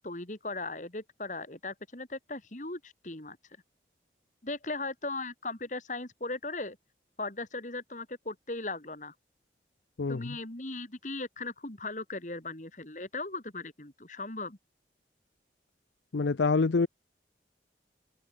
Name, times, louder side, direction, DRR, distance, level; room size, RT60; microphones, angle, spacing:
voice 1, 0.0-3.4 4.4-6.8 7.2-9.1 10.1-14.6, left 2 dB, 45° left, 2.5 m, -38 dB
voice 2, 10.0-10.4 16.1-16.9, left 4 dB, 80° left, 0.6 m, -26 dB
head